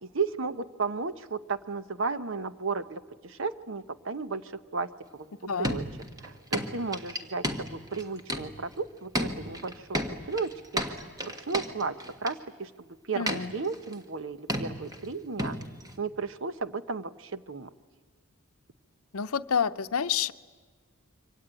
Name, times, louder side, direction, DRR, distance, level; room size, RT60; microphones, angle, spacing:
voice 1, 0.0-5.3 5.6-5.8 6.2-12.0 12.2-15.6 16.0-17.7, right 4 dB, 60° right, 12 dB, 0.9 m, -34 dB
voice 2, 5.4-5.8 13.1-13.5 19.1-20.3, left 7 dB, 80° left, 12 dB, 0.7 m, -28 dB
sound 1, 5.6-8.8 9.1-12.3 13.3-13.9 14.5-15.1 15.4-15.9, equal, 15° right, 1.5 m, -33 dB
27.0 x 24.5 x 9.0 m, 1.5 s
head